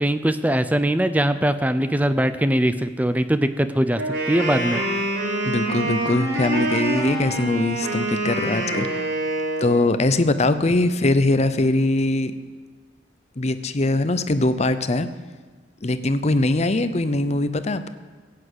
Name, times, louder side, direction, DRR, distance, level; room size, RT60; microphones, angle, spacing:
voice 1, 0.0-4.0 4.3-4.8, right 1 dB, 10° right, 11 dB, 0.6 m, -21 dB
Wind instrument woodwind instrument, 3.9-9.8, right 2 dB, 80° right, 3.7 m, -25 dB
voice 2, 5.4-9.0 9.6-12.3 13.4-15.1 15.8-17.9, left 2 dB, 35° left, 11 dB, 0.7 m, -21 dB
16.0 x 8.7 x 8.0 m, 1.4 s
head